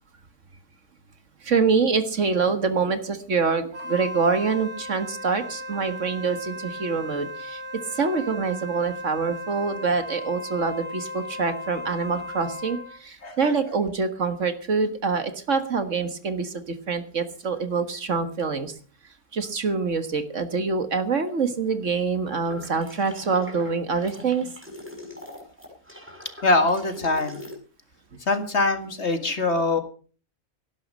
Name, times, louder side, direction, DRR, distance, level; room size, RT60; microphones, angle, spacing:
voice 1, 1.4-7.6 7.9-18.7 19.3-24.5, right 5 dB, 55° right, 9 dB, 1.8 m, -25 dB
Wind instrument woodwind instrument, 3.7-13.0, left 1 dB, 75° right, 2.2 m, -36 dB
voice 2, 13.2-13.5 26.4-27.4 28.3-29.8, left 3 dB, 50° left, 8 dB, 2.1 m, -23 dB
sound 1, 22.4-27.5, left 1 dB, 10° right, 6.5 m, -42 dB
18.0 x 11.5 x 5.4 m, 0.41 s
omnidirectional pair, 1.5 m